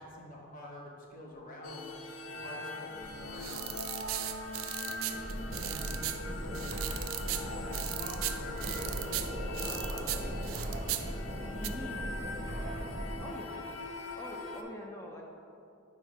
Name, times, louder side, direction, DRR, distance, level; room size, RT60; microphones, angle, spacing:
voice 1, 0.0-1.9 2.3-3.8 5.6-6.7 7.2-9.3 9.5-12.9, left 1 dB, 40° left, -1 dB, 0.8 m, -48 dB
sound 1, 1.6-14.6, left 2 dB, 75° left, 0.5 m, -42 dB
sound 2, 3.0-11.7, right 12 dB, 80° right, 0.3 m, -39 dB
sound 3, 5.1-13.3, right 1 dB, 35° right, 0.7 m, -39 dB
voice 2, 11.6-12.0 13.2-13.6 14.2-15.2, left 1 dB, 15° left, -1 dB, 0.5 m, -43 dB
4.9 x 4.5 x 4.6 m, 2.6 s
head